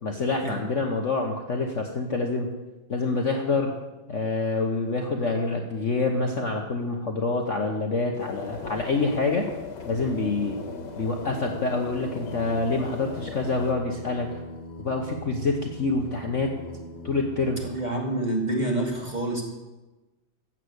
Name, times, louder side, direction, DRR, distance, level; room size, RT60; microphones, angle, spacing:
voice 1, 0.0-2.5 2.9-3.7 4.1-9.5 9.9-10.5 11.0-14.3 14.8-16.5 17.0-17.6, left 3 dB, 45° left, 2 dB, 1.3 m, -26 dB
sound 1, 8.2-13.7, left 5 dB, 85° left, 2.2 m, -39 dB
Singing, 9.8-17.7, equal, 25° left, 1.9 m, -41 dB
voice 2, 17.6-19.4, right 1 dB, 20° right, 0 dB, 2.3 m, -27 dB
15.0 x 7.6 x 8.1 m, 1.1 s
omnidirectional pair, 2.2 m